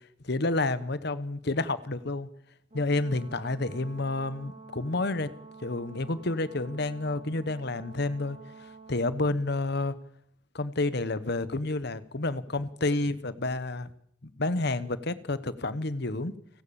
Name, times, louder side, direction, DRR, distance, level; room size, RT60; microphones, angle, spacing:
voice 1, 0.2-2.3 2.7-5.3 5.6-8.4 8.9-9.9 10.5-13.9 14.2-16.3, left 2 dB, 55° left, 14 dB, 1.2 m, -29 dB
Brass instrument, 2.7-9.1, right 4 dB, 35° right, 2.8 m, -49 dB
30.0 x 15.5 x 7.1 m, 0.73 s
head